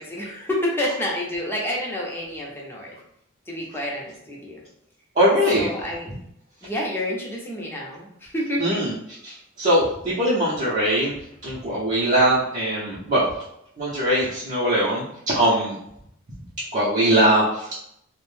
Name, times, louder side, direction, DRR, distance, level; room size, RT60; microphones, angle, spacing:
voice 1, 0.0-2.9 3.5-4.6 5.5-6.1 6.6-8.8, left 1 dB, 10° left, -3 dB, 0.6 m, -29 dB
voice 2, 5.2-5.7 8.6-8.9 9.2-11.1 11.4-13.3 13.8-15.8 16.7-17.7, right 1 dB, 40° right, -8 dB, 0.6 m, -21 dB
2.5 x 2.1 x 3.1 m, 0.74 s
head